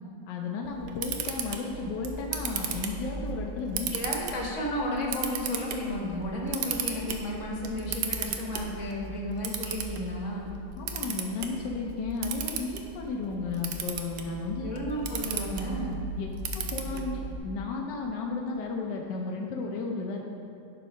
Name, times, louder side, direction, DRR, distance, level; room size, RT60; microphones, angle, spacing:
voice 1, 0.3-3.9 10.8-14.7 16.2-16.3 16.5-20.3, left 4 dB, 85° left, 0 dB, 1.4 m, -34 dB
Camera, 0.6-17.4, right 6 dB, 80° right, 1.3 m, -36 dB
voice 2, 3.9-10.5 14.6-15.9, left 1 dB, 45° left, -2 dB, 1.6 m, -33 dB
11.0 x 4.7 x 5.2 m, 2.7 s
omnidirectional pair, 1.8 m